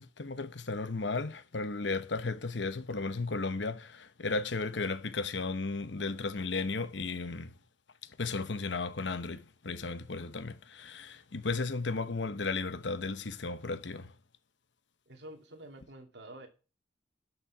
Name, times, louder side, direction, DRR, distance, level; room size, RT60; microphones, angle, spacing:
voice 1, 0.0-7.5 8.2-14.1, left 3 dB, 90° left, 1.0 m, -35 dB
voice 2, 15.1-16.5, right 1 dB, 70° right, 2.5 m, -48 dB
11.5 x 6.5 x 5.9 m
head